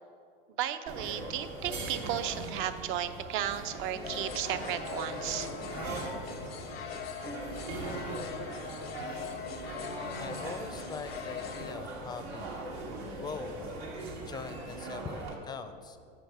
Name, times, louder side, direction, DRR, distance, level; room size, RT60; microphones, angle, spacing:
voice 1, 0.6-5.5, right 10 dB, 45° right, 11 dB, 0.5 m, -34 dB
sound 1, 0.9-15.3, right 2 dB, 90° right, 1.5 m, -40 dB
sound 2, 4.0-11.7, left 7 dB, 90° left, 0.6 m, -41 dB
voice 2, 10.2-12.9 13.2-13.7 14.3-16.0, left 5 dB, 15° left, 10 dB, 0.4 m, -42 dB
7.4 x 5.2 x 4.5 m, 2.2 s
hypercardioid pair, 100°, 29 cm